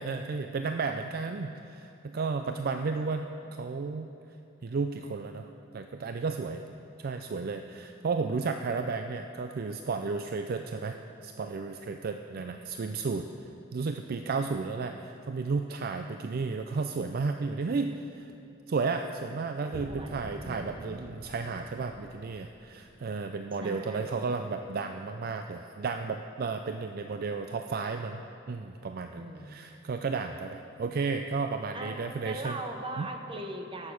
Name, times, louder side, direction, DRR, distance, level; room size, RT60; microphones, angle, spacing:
voice 1, 0.0-4.1 4.6-6.6 7.0-11.0 11.2-13.3 13.7-18.3 18.7-28.2 28.5-32.6 33.0-33.1, right 4 dB, 50° right, 6 dB, 0.4 m, -33 dB
voice 2, 14.5-15.0 19.4-21.0 23.6-24.3 29.2-29.8 31.7-33.9, right 1 dB, 25° right, 4 dB, 1.0 m, -41 dB
sound 1, 19.7-23.4, equal, 5° left, 1.6 m, -47 dB
17.0 x 6.6 x 6.2 m, 2.7 s
head